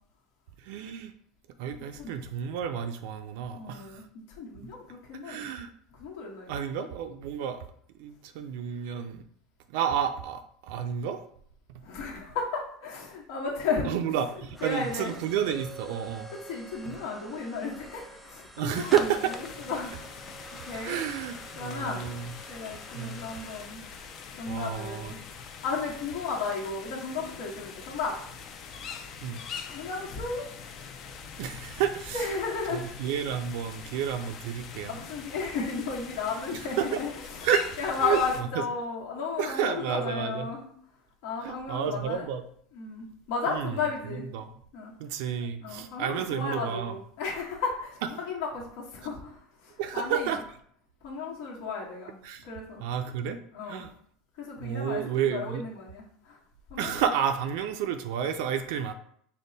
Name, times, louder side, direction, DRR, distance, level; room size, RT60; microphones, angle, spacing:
voice 1, 0.6-1.1 1.6-4.0 5.2-5.7 6.5-7.6 8.0-9.2 9.7-11.2 11.7-11.8 13.8-16.3 16.9-17.0 18.6-19.3 20.7-22.4 22.9-23.2 24.5-25.1 29.2-29.4 31.4-32.3 32.7-35.0 36.5-37.0 37.4-38.6 39.4-40.5 41.4-42.4 43.5-43.8 44.1-44.5 45.0-46.9 49.8-50.4 52.2-52.4 52.8-53.4 53.6-53.9 54.6-55.6 56.8-58.9, right 8 dB, 70° right, 7 dB, 0.4 m, -31 dB
voice 2, 3.5-5.5 6.0-6.6 11.8-13.9 14.6-15.1 16.4-19.1 19.6-20.1 20.6-21.0 21.6-22.1 22.5-23.8 24.3-25.2 25.6-28.1 29.7-30.4 32.1-32.9 34.9-37.5 37.8-40.7 41.2-42.2 42.7-44.3 44.7-44.9 45.6-50.3 51.0-52.8 53.5-53.9 54.4-56.4 56.7-56.9, left 4 dB, 65° left, -3 dB, 1.3 m, -34 dB
sound 1, 13.3-26.1, right 2 dB, 5° right, 0.4 m, -48 dB
sound 2, 18.7-38.4, left 6 dB, 45° left, 0.6 m, -44 dB
5.3 x 2.2 x 3.9 m, 0.63 s
supercardioid pair, 135°, 0 cm